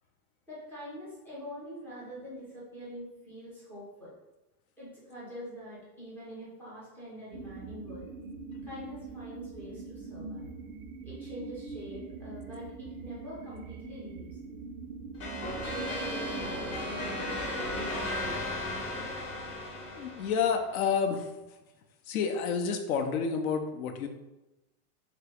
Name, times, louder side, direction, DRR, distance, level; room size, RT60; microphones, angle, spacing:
voice 1, 0.5-4.1 4.8-8.1 8.6-10.5 11.0-14.4 15.6-19.1, equal, 5° left, -8 dB, 0.3 m, -44 dB
sound 1, 7.3-18.1, right 4 dB, 60° right, 0.5 m, -43 dB
sound 2, 15.2-20.7, left 1 dB, 40° left, 0.9 m, -35 dB
voice 2, 19.9-21.3 22.1-24.1, left 6 dB, 65° left, 6 dB, 0.6 m, -29 dB
2.9 x 2.9 x 3.4 m, 1.0 s
supercardioid pair, 145°, 46 cm